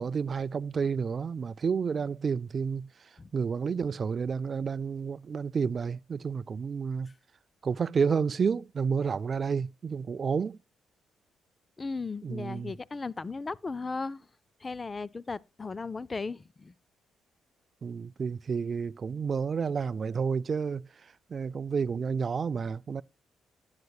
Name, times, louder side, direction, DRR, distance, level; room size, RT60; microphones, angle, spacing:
voice 1, 0.0-2.9 3.3-7.1 7.6-10.6 12.2-12.7 17.8-20.9 21.3-23.0, right 6 dB, 45° right, 0.4 m, -30 dB
voice 2, 11.8-14.3 14.6-16.7, left 4 dB, 25° left, 0.5 m, -36 dB
14.5 x 9.6 x 2.3 m
cardioid pair, 90°, 0 cm